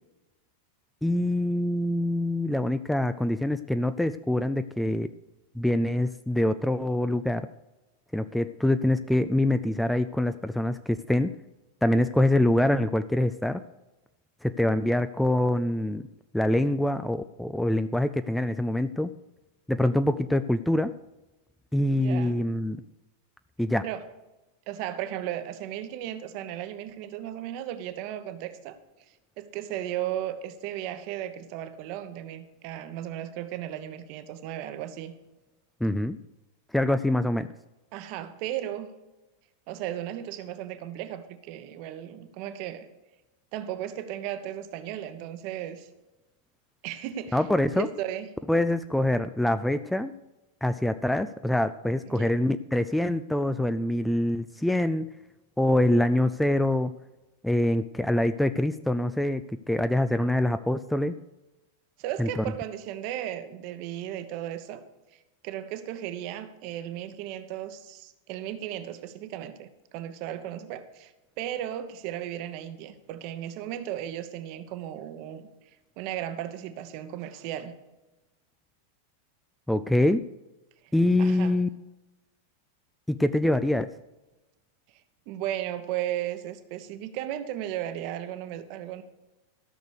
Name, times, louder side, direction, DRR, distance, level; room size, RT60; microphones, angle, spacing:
voice 1, 1.0-5.1 5.6-7.5 8.1-11.3 11.8-13.6 14.4-16.1 16.3-19.1 19.7-20.9 21.7-22.8 23.6-23.9 35.8-36.2 36.7-37.5 47.3-47.9 48.5-50.1 50.6-55.1 55.6-56.9 57.4-59.4 59.7-61.2 62.2-62.4 79.7-80.2 80.9-81.7 83.1-83.9, left 1 dB, 5° left, 11 dB, 0.4 m, -25 dB
voice 2, 21.9-22.4 23.8-24.0 24.7-28.8 29.4-35.1 37.9-38.9 39.7-42.9 43.5-45.9 46.8-47.4 47.7-48.3 52.1-52.3 62.0-64.8 65.4-69.7 69.9-71.1 71.4-75.4 76.0-77.7 81.2-81.6 85.3-89.0, right 11 dB, 45° right, 10 dB, 1.0 m, -35 dB
14.0 x 6.6 x 6.6 m, 1.0 s
figure-of-eight pair, 90°, 0 cm